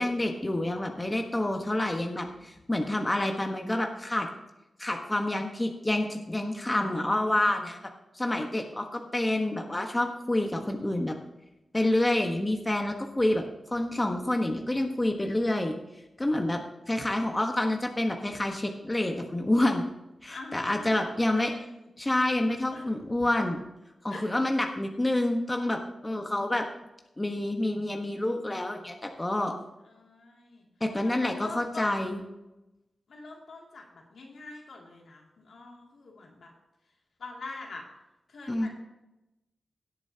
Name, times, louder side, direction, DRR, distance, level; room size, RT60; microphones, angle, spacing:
voice 1, 0.0-4.3 4.8-7.8 8.1-11.1 11.7-15.8 16.2-16.6 16.9-19.8 20.2-21.5 22.0-23.6 24.0-26.7 27.2-29.5 30.8-32.2 38.5-38.7, left 1 dB, 20° left, 3 dB, 1.3 m, -28 dB
voice 2, 20.2-21.9 22.7-23.0 24.1-24.3 29.8-30.7 31.0-32.1 33.1-36.5 37.2-37.8 38.3-38.7, left 3 dB, 75° left, -1 dB, 2.6 m, -44 dB
17.0 x 8.5 x 2.9 m, 0.94 s
cardioid pair, 60°, 0 cm